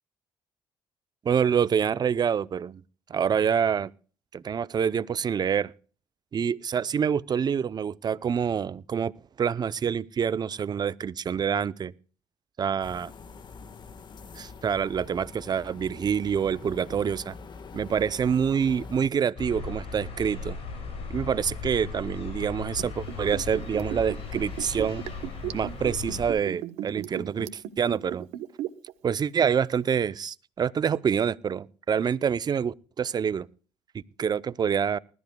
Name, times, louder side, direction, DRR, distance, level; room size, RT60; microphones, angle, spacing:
voice 1, 1.2-2.8 3.1-3.9 4.3-5.7 6.3-9.1 9.4-11.9 12.6-13.1 14.4-17.3 17.7-20.6 21.1-25.0 25.5-28.3 29.0-33.5 34.2-35.0, right 7 dB, 40° right, 0.6 m, -26 dB
sound 1, 12.8-19.1, left 4 dB, 45° left, 1.4 m, -44 dB
sound 2, 19.4-26.3, left 4 dB, 65° left, 7.4 m, -37 dB
Liquid, 22.8-28.9 29.2-29.3, right 12 dB, 85° right, 1.0 m, -36 dB
20.0 x 13.5 x 2.3 m
cardioid pair, 80°, 10 cm